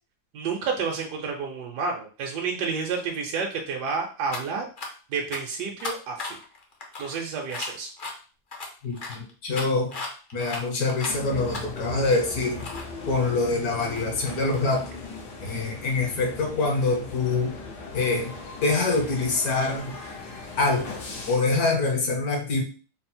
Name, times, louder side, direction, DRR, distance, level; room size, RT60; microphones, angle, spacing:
voice 1, 0.3-4.7 5.1-6.4 7.0-7.9, right 5 dB, 80° right, 1 dB, 1.2 m, -30 dB
sound 1, 4.3-4.4 4.8-4.9 5.3-5.4 5.8-8.1 8.5-12.9 13.3-14.9, left 3 dB, 50° left, 0.6 m, -37 dB
voice 2, 8.8-9.9 10.3-12.6 13.1-14.9 15.4-17.5 17.9-20.0 20.6-20.9 21.3-22.6, left 3 dB, 65° left, 2 dB, 1.4 m, -25 dB
sound 2, 11.1-21.4, left 3 dB, 85° left, 1.6 m, -39 dB
4.2 x 2.0 x 4.2 m, 0.37 s
omnidirectional pair, 1.8 m